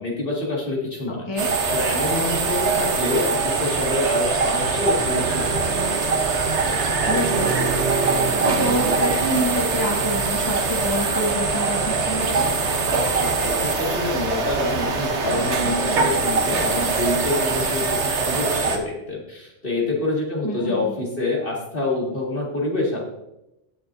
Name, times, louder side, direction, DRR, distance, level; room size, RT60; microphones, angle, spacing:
voice 1, 0.0-1.3 1.7-5.8 13.2-23.0, left 2 dB, 50° left, -3 dB, 2.5 m, -26 dB
sound 1, 1.4-18.8, right 4 dB, 75° right, 1.4 m, -22 dB
voice 2, 7.1-12.5 20.4-20.9, equal, 25° left, -1 dB, 1.3 m, -27 dB
16.5 x 6.8 x 2.7 m, 0.88 s
omnidirectional pair, 1.2 m